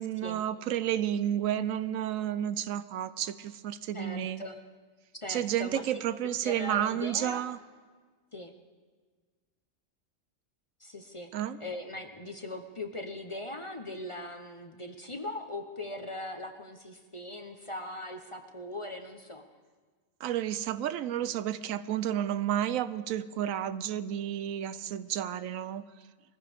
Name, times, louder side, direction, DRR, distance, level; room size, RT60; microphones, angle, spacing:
voice 1, 0.0-4.4 5.3-7.6 11.3-11.6 20.2-25.8, right 11 dB, 85° right, 14 dB, 1.0 m, -31 dB
voice 2, 3.9-4.6 5.2-5.8 6.4-7.4 8.3-8.5 10.8-11.3 11.6-19.4, left 1 dB, 25° left, 5 dB, 0.8 m, -40 dB
21.5 x 15.0 x 3.5 m, 1.5 s
omnidirectional pair, 1.4 m